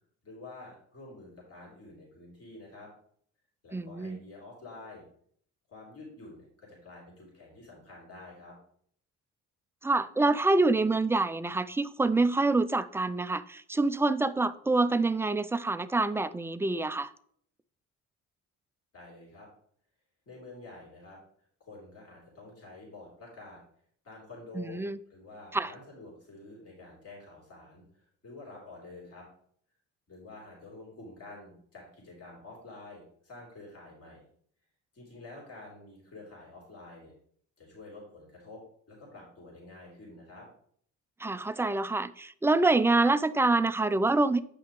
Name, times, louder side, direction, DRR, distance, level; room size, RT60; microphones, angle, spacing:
voice 1, 0.2-2.9 3.6-5.0 5.7-8.6 18.9-19.5 20.2-21.2 21.6-23.6 24.0-29.3 30.1-34.2 34.9-37.1 37.6-38.6 38.9-40.5, left 2 dB, 50° left, 3.3 m, -48 dB
voice 2, 3.7-4.2 9.8-17.1 24.6-25.0 25.5-25.7 41.2-44.4, right 2 dB, 10° right, 0.3 m, -26 dB
8.6 x 5.7 x 3.1 m
cardioid pair, 90°, 30 cm